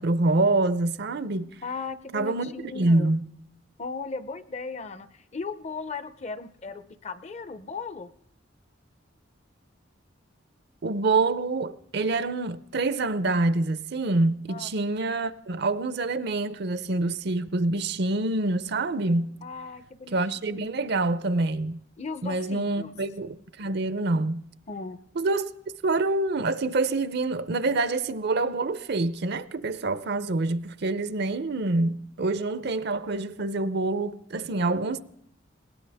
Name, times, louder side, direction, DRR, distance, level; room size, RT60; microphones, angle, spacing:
voice 1, 0.0-1.5 2.1-3.2 10.8-19.4 20.1-21.8 22.2-24.4 25.2-25.5 25.8-35.0, right 2 dB, 55° right, 0.6 m, -26 dB
voice 2, 1.6-3.1 3.8-8.1 14.5-14.7 19.4-20.2 22.0-22.9 24.7-25.0, left 4 dB, 35° left, 0.6 m, -37 dB
20.0 x 18.0 x 3.5 m
head